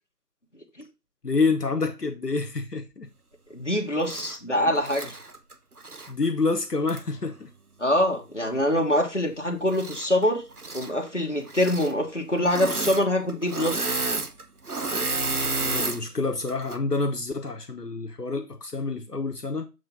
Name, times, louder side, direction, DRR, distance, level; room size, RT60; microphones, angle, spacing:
voice 1, 1.2-3.1 6.1-7.5 15.6-19.7, left 3 dB, 75° left, 1.0 m, -27 dB
voice 2, 3.5-5.2 7.8-10.4 10.7-13.9, left 1 dB, 45° left, 1.3 m, -24 dB
Engine / Mechanisms, 4.0-4.4 4.8-6.1 6.9-7.0 9.7-10.2 10.5-10.9 11.5-11.9 12.4-13.0 13.3-16.0 16.5-16.8, right 3 dB, 65° right, 0.9 m, -30 dB
7.6 x 2.9 x 5.6 m
figure-of-eight pair, 180°, 48 cm